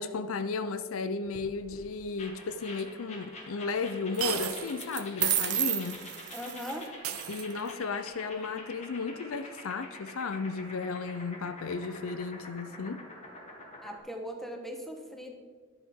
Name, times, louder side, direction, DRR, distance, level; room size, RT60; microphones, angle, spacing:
voice 1, 0.0-6.0 7.3-13.0, left 4 dB, 70° left, 11 dB, 0.5 m, -34 dB
sound 1, 1.3-1.8 4.1-4.5 4.8-6.9, right 11 dB, 55° right, 1.0 m, -31 dB
sound 2, 2.2-14.0, left 2 dB, 30° left, 1.8 m, -47 dB
sound 3, 2.8-2.9 4.2-4.9 5.3-5.4 7.0-7.9, right 9 dB, 85° right, 0.8 m, -35 dB
voice 2, 6.3-6.9 13.8-15.3, equal, ahead, 3 dB, 1.2 m, -39 dB
11.0 x 11.0 x 3.7 m, 1.5 s
head